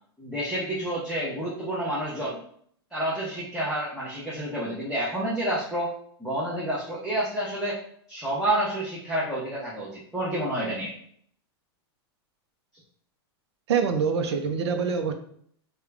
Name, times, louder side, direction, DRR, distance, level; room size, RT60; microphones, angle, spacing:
voice 1, 0.2-2.4 2.9-5.9 6.2-7.8 8.1-10.9, right 1 dB, 5° right, -8 dB, 0.8 m, -29 dB
voice 2, 13.7-15.1, right 6 dB, 80° right, 6 dB, 0.6 m, -25 dB
3.6 x 2.3 x 3.4 m, 0.63 s
hypercardioid pair, 140°, 14 cm